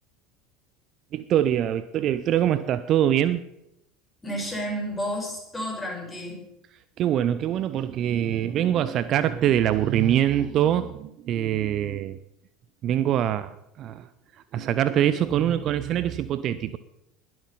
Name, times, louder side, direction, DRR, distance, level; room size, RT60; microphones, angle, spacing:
voice 1, 1.1-3.4 7.0-12.2 12.8-14.1 14.5-16.8, right 11 dB, 40° right, 15 dB, 0.6 m, -24 dB
voice 2, 4.2-6.4, equal, 10° left, -1 dB, 5.9 m, -31 dB
21.0 x 7.9 x 5.5 m, 0.82 s
figure-of-eight pair, 70°, 0 cm